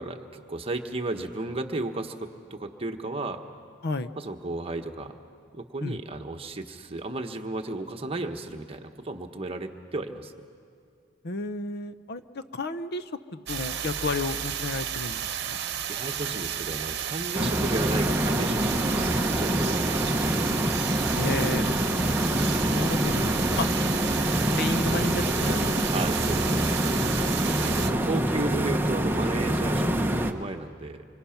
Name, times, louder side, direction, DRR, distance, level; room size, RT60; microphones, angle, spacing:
voice 1, 0.0-3.4 4.2-5.1 5.5-10.3 15.9-20.3 23.6-23.7 25.9-27.1 27.6-31.1, right 2 dB, 30° right, 4 dB, 1.2 m, -34 dB
voice 2, 11.2-15.6 17.4-17.5 21.2-21.8 22.7-23.7 24.0-25.9, left 3 dB, 55° left, 11 dB, 0.7 m, -32 dB
sound 1, 13.5-27.9, right 9 dB, 55° right, 1.0 m, -32 dB
sound 2, 17.3-30.3, equal, 10° right, 0.8 m, -26 dB
26.0 x 25.0 x 5.9 m, 2.3 s
head